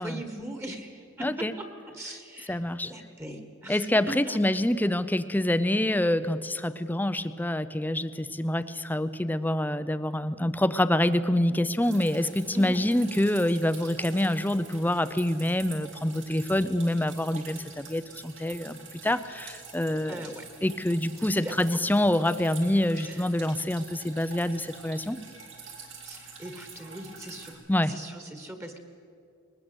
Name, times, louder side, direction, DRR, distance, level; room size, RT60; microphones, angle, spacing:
voice 1, 0.0-4.4 12.5-12.8 20.1-20.5 21.4-21.8 23.0-23.3 26.0-27.6 27.9-28.8, right 1 dB, 15° right, 6 dB, 1.6 m, -40 dB
voice 2, 1.2-1.5 2.5-2.9 3.7-20.2 20.6-25.2 27.7-27.9, left 1 dB, 10° left, 13 dB, 0.6 m, -26 dB
Drip, 11.8-27.5, right 5 dB, 70° right, 4.4 m, -47 dB
21.0 x 19.5 x 8.0 m, 2.4 s
head